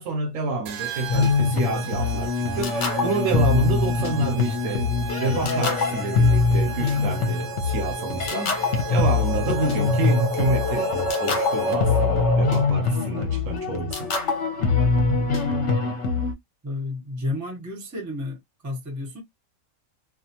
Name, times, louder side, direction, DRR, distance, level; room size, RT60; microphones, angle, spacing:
voice 1, 0.0-8.6 8.9-14.1, right 3 dB, 70° right, 0.9 m, -28 dB
sound 1, 0.7-12.0, right 5 dB, 85° right, 1.1 m, -37 dB
sound 2, 1.1-16.3, left 4 dB, 60° left, 0.9 m, -23 dB
Wind instrument woodwind instrument, 1.9-6.4, left 3 dB, 10° left, 0.9 m, -30 dB
voice 2, 16.6-18.4 18.6-19.2, left 2 dB, 20° right, 0.5 m, -31 dB
2.4 x 2.3 x 2.7 m
omnidirectional pair, 1.5 m